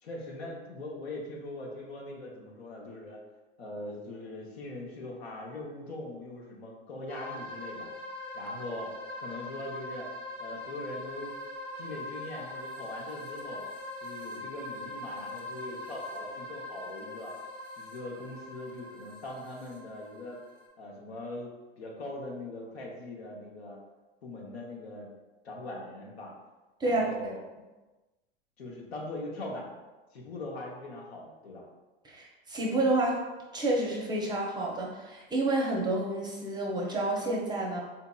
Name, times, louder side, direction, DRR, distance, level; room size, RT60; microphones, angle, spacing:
voice 1, 0.0-3.2 3.6-7.9 8.3-10.1 10.4-11.3 11.8-13.6 14.0-17.3 17.8-20.4 20.8-21.5 21.8-23.8 24.2-25.1 25.4-26.3 26.8-27.4 28.6-29.7 30.1-31.7, left 2 dB, 90° left, -2 dB, 0.9 m, -41 dB
sound 1, 7.1-20.7, left 1 dB, 15° left, 0.8 m, -42 dB
voice 2, 32.0-33.2 33.5-37.8, right 2 dB, 15° right, -2 dB, 0.5 m, -29 dB
4.0 x 2.8 x 2.3 m, 1.2 s
hypercardioid pair, 110°, 31 cm